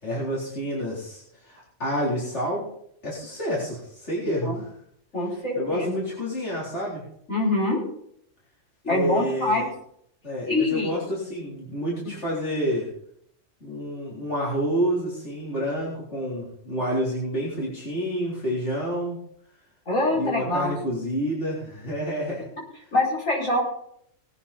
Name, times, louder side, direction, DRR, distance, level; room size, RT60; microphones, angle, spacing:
voice 1, 0.0-2.7 3.0-4.6 5.5-7.0 8.8-9.7 10.2-12.9 13.6-19.2 20.1-22.5, equal, 60° left, -7 dB, 4.3 m, -29 dB
voice 2, 5.1-5.9 7.3-7.8 8.9-9.7 10.5-10.9 19.9-20.7 22.9-23.6, left 2 dB, 85° left, -3 dB, 5.6 m, -24 dB
19.0 x 9.7 x 4.2 m, 0.70 s
omnidirectional pair, 1.3 m